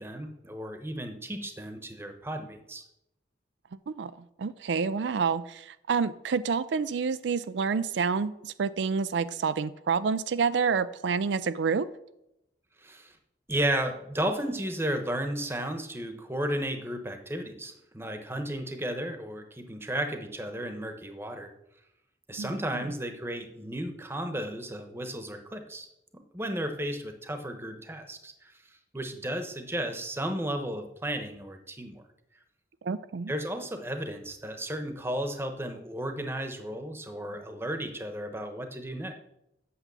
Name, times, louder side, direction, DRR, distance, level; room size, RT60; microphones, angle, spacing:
voice 1, 0.0-2.8 12.8-13.1 13.5-21.5 22.3-25.9 26.3-28.5 28.9-32.0 33.3-39.2, right 1 dB, 15° right, 6 dB, 1.0 m, -34 dB
voice 2, 4.4-11.9 22.4-22.8 32.8-33.3, right 5 dB, 80° right, 14 dB, 0.4 m, -28 dB
8.5 x 7.0 x 6.8 m, 0.84 s
head